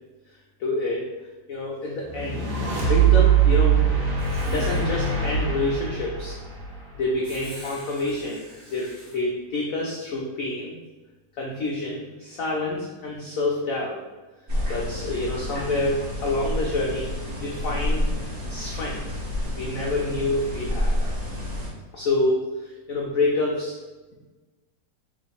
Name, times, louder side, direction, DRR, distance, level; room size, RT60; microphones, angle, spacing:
voice 1, 0.6-1.1 1.5-2.5 2.9-3.8 4.4-6.4 6.9-8.5 8.7-10.7 11.4-14.0 14.7-18.1 18.5-19.0 19.6-20.9 21.9-23.7, left 2 dB, 85° left, -2 dB, 0.7 m, -27 dB
sound 1, 2.1-7.4, right 8 dB, 65° right, 1.3 m, -22 dB
Writing, 4.2-4.9 7.2-9.2, equal, 10° right, 1.0 m, -45 dB
sound 2, 14.5-21.7, left 1 dB, 45° right, 0.7 m, -29 dB
3.1 x 2.5 x 4.0 m, 1.2 s
omnidirectional pair, 2.0 m